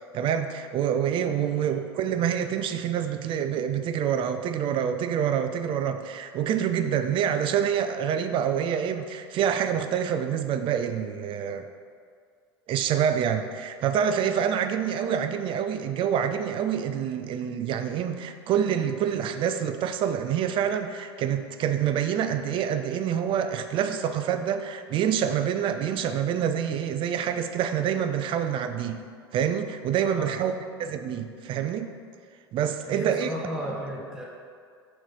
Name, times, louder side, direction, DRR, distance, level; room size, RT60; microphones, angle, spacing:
voice 1, 0.1-11.7 12.7-29.0 29.3-30.5 30.8-31.9 32.5-33.3, right 8 dB, 40° right, 8 dB, 0.5 m, -27 dB
voice 2, 1.4-1.8 30.0-30.4 32.9-34.2, equal, 5° right, -3 dB, 0.9 m, -35 dB
6.2 x 3.2 x 5.1 m, 2.2 s
hypercardioid pair, 80°, 13 cm